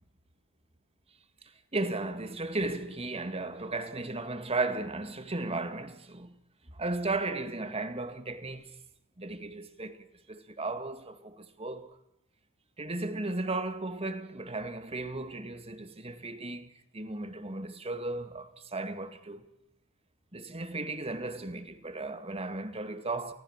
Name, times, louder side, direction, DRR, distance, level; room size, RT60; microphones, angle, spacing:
voice 1, 1.7-6.4 6.7-8.7 9.2-12.0 12.8-19.5 20.3-23.3, right 2 dB, 25° right, 2.1 m, -35 dB
29.5 x 19.0 x 7.4 m
head